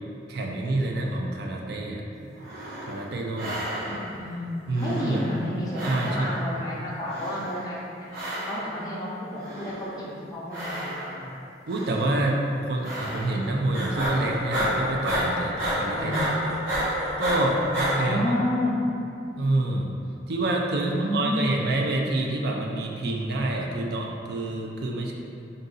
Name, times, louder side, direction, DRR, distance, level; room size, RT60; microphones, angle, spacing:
voice 1, 0.3-2.3 2.8-3.6 4.7-5.2 5.8-6.3 11.7-16.5 17.2-18.2 19.4-19.9 20.3-25.1, right 2 dB, 60° right, 0 dB, 0.5 m, -27 dB
sound 1, 2.4-3.1 3.4-4.2 4.7-5.5 5.7-6.5 7.1-7.7 8.1-8.8 9.3-10.0 10.5-11.3 11.7-12.2 12.8-13.4 13.7-17.9, equal, 80° right, 1.3 m, -31 dB
voice 2, 3.9-4.5 4.8-8.1 8.4-11.3 15.9-16.2 18.0-18.7 20.8-21.5, left 1 dB, 20° left, -7 dB, 0.7 m, -31 dB
3.8 x 2.6 x 3.8 m, 2.6 s
head